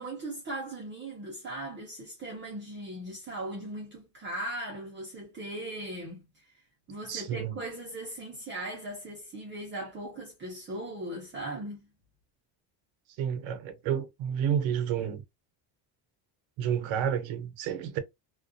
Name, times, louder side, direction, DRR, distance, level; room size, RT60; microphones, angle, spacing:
voice 1, 0.0-6.4 6.9-11.9, right 1 dB, 25° right, 0.6 m, -38 dB
voice 2, 7.1-7.6 13.2-15.2 16.6-18.0, right 8 dB, 80° right, 0.8 m, -30 dB
2.3 x 2.3 x 2.6 m
cardioid pair, 170°, 46 cm